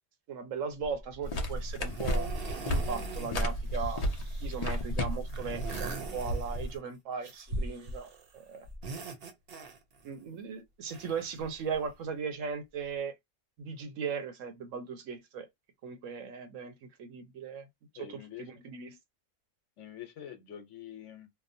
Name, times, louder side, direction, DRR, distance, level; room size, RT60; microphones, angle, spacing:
voice 1, 0.3-2.3 2.6-4.0 4.4-8.7 10.0-13.1 13.6-15.5 15.8-17.7 17.9-19.0, right 6 dB, 85° right, 1.1 m, -38 dB
sound 1, 0.8-1.2 1.8-3.4 3.7-4.8 5.3-6.8 7.2-8.3 8.6-10.1 10.9-11.9 12.8-12.9, right 3 dB, 55° right, 0.8 m, -42 dB
sound 2, 1.2-6.8, equal, 45° left, 0.5 m, -33 dB
voice 2, 18.0-18.5 19.8-21.3, left 10 dB, 75° left, 1.0 m, -45 dB
2.8 x 2.0 x 2.6 m
omnidirectional pair, 1.3 m